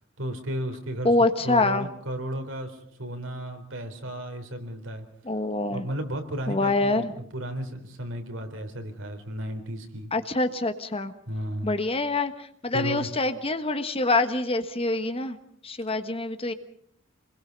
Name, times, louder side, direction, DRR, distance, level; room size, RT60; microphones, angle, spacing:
voice 1, 0.2-1.1 1.4-5.1 5.7-10.1 11.3-11.7 12.7-13.1, right 1 dB, 75° right, 6 dB, 3.9 m, -34 dB
voice 2, 1.0-1.9 5.2-5.8 6.5-7.1 10.1-11.1 11.6-15.4 15.6-16.5, left 2 dB, 30° left, 9 dB, 1.4 m, -25 dB
28.0 x 21.5 x 5.4 m, 0.65 s
head